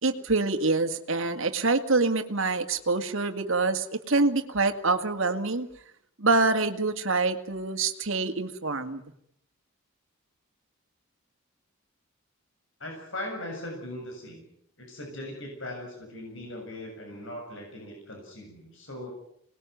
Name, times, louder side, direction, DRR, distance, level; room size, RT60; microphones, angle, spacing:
voice 1, 0.0-5.7 6.2-9.0, right 3 dB, 65° right, 7 dB, 2.2 m, -26 dB
voice 2, 12.8-14.4 14.8-19.1, left 1 dB, 60° left, 1 dB, 7.3 m, -39 dB
26.0 x 20.0 x 9.4 m, 0.72 s
head